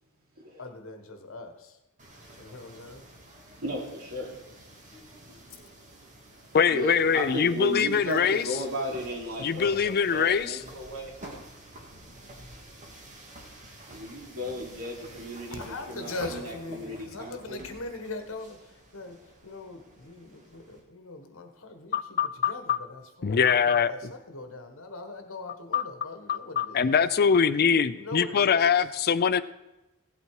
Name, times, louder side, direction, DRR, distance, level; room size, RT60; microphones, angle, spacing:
voice 1, 0.6-1.8 2.4-3.0 15.6-19.2 19.4-22.2 22.5-26.9 27.9-28.7, left 2 dB, 65° left, 6 dB, 1.4 m, -41 dB
sound 1, 2.0-20.8, right 1 dB, 35° right, 2.1 m, -49 dB
voice 2, 3.6-4.4 6.7-11.1 13.9-17.8, equal, 75° right, -1 dB, 3.0 m, -35 dB
voice 3, 6.5-8.5 9.4-10.6 21.9-22.8 23.2-24.1 25.7-25.8 26.3-29.4, left 6 dB, 45° left, 15 dB, 0.4 m, -23 dB
16.0 x 8.1 x 4.8 m, 0.97 s
head